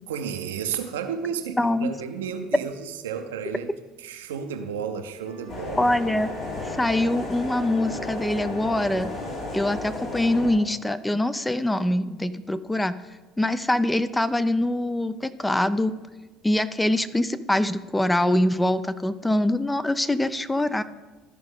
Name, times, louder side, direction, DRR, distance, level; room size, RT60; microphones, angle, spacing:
voice 1, 0.1-5.9, right 7 dB, 75° right, 7 dB, 0.6 m, -32 dB
voice 2, 1.6-1.9 5.8-6.3 6.6-9.1 9.5-13.0 13.4-15.9 16.4-20.8, left 1 dB, 10° left, 13 dB, 0.4 m, -24 dB
Wind instrument woodwind instrument, 5.2-10.0, left 1 dB, 75° left, 1.4 m, -48 dB
sound 1, 5.5-10.5, left 2 dB, 50° left, 2.8 m, -33 dB
13.0 x 5.2 x 3.7 m, 1.2 s
figure-of-eight pair, 60°, 0 cm